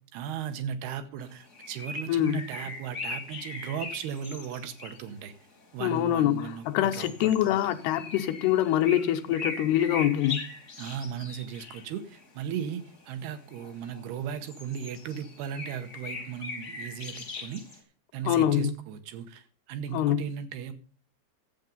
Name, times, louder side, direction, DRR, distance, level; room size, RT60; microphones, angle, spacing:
voice 1, 0.1-5.3 5.7-7.5 10.8-17.7 18.1-20.7, right 8 dB, 80° right, 2.9 m, -36 dB
sound 1, 1.2-5.2 5.6-5.7 6.2-6.4 6.9-14.1 14.4-17.8, left 3 dB, 45° left, 1.0 m, -40 dB
voice 2, 2.1-2.4 5.8-10.4 18.3-18.7 19.9-20.2, left 11 dB, 80° left, 2.6 m, -25 dB
11.5 x 8.1 x 5.3 m
omnidirectional pair, 4.8 m